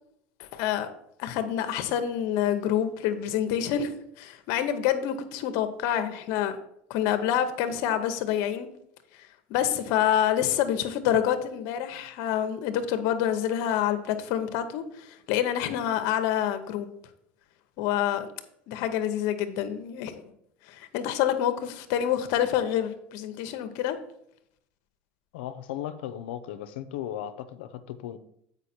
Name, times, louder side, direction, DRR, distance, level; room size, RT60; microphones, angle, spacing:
voice 1, 0.4-0.9 1.2-6.6 6.9-8.7 9.5-16.9 17.8-18.3 18.7-20.3 20.7-24.0, left 10 dB, 70° left, 9 dB, 0.9 m, -27 dB
voice 2, 25.3-28.2, left 11 dB, 90° left, 12 dB, 0.6 m, -36 dB
8.1 x 5.2 x 4.3 m, 0.74 s
supercardioid pair, 120°, 6 cm